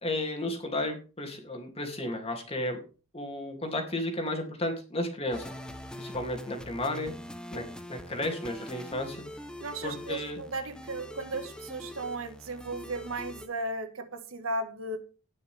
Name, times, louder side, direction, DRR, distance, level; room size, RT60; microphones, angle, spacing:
voice 1, 0.0-2.8 3.1-5.5 6.0-7.1 7.5-7.6 7.9-9.2 9.8-10.4, left 1 dB, 30° left, 3 dB, 3.0 m, -33 dB
sound 1, 5.3-13.5, left 1 dB, 5° left, 1.2 m, -43 dB
voice 2, 9.6-15.0, right 2 dB, 90° right, 8 dB, 1.9 m, -35 dB
18.5 x 6.5 x 3.6 m, 0.34 s
head